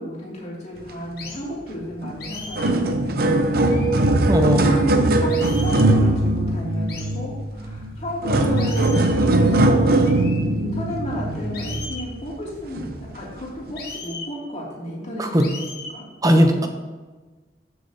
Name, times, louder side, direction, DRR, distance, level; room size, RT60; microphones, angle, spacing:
voice 1, 0.0-10.2 10.5-16.1, equal, 40° left, -6 dB, 2.9 m, -32 dB
sound 1, 1.2-1.4 2.2-2.8 3.7-4.1 5.3-5.9 6.9-7.2 8.6-9.2 10.0-10.4 11.5-12.1 13.8-14.3 15.4-16.0, left 4 dB, 60° left, 1.4 m, -37 dB
sound 2, 2.0-2.1 2.4-12.1 12.8-12.9 13.7-13.8, right 2 dB, 55° right, 0.7 m, -20 dB
voice 2, 4.3-4.8 15.2-15.5 16.2-16.7, equal, 20° right, 5 dB, 0.8 m, -18 dB
14.0 x 6.4 x 2.9 m, 1.3 s
head